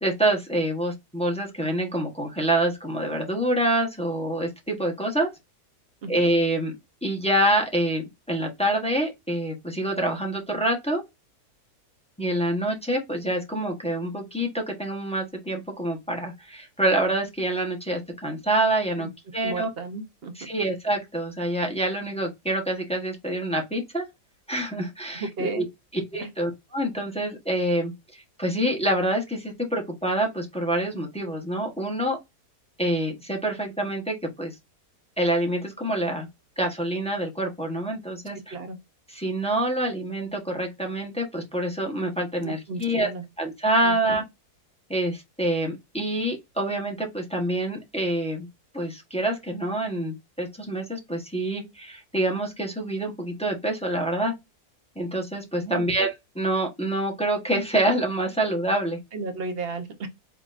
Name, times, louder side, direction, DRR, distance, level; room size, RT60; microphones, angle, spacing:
voice 1, 0.0-5.3 6.1-6.7 7.0-11.0 12.2-19.7 20.4-24.0 24.5-25.6 26.1-32.2 32.8-34.5 35.2-36.3 36.6-38.5 39.1-43.1 43.4-44.2 44.9-48.5 48.7-54.3 55.0-59.0, right 1 dB, 5° left, 0.9 m, -26 dB
voice 2, 19.4-20.5 25.1-25.6 26.2-26.3 38.5-38.8 42.4-43.2 43.8-44.2 55.6-55.8 59.1-60.1, right 3 dB, 45° right, 0.9 m, -34 dB
4.7 x 3.7 x 2.5 m
omnidirectional pair, 1.7 m